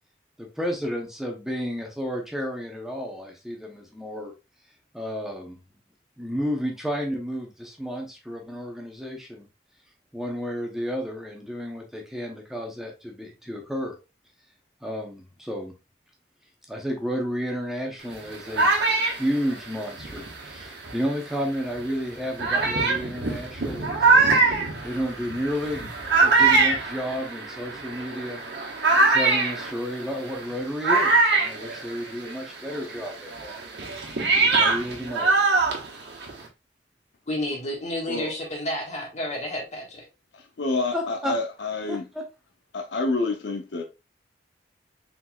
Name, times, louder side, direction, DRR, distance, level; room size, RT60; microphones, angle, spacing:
voice 1, 0.4-4.3 4.9-5.6 6.2-9.5 10.1-14.0 14.8-15.7 16.7-24.2 24.8-28.4 29.0-33.6 34.5-35.3 40.9-41.3 41.9-42.2, equal, ahead, 0.8 m, -32 dB
sound 1, 18.1-21.1 21.8-21.9 22.4-32.4 32.7-36.5, right 3 dB, 65° right, 1.2 m, -23 dB
voice 2, 37.3-40.0, left 1 dB, 40° left, 1.4 m, -31 dB
voice 3, 40.3-42.1 42.7-43.8, left 3 dB, 75° left, 0.7 m, -28 dB
4.4 x 3.9 x 2.3 m
head